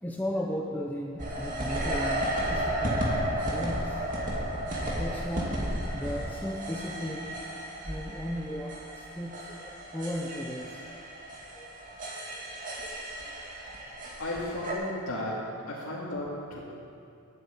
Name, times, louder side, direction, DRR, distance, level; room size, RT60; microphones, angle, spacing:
voice 1, 0.0-4.0 5.0-5.6 5.9-7.3 7.8-11.0 11.5-11.7 13.7-13.8, equal, 10° left, 0 dB, 0.7 m, -36 dB
sound 1, 1.2-14.7, right 1 dB, 35° right, 2.0 m, -33 dB
voice 2, 14.2-16.6, left 1 dB, 85° left, -8 dB, 2.2 m, -34 dB
10.5 x 8.2 x 8.9 m, 2.5 s
head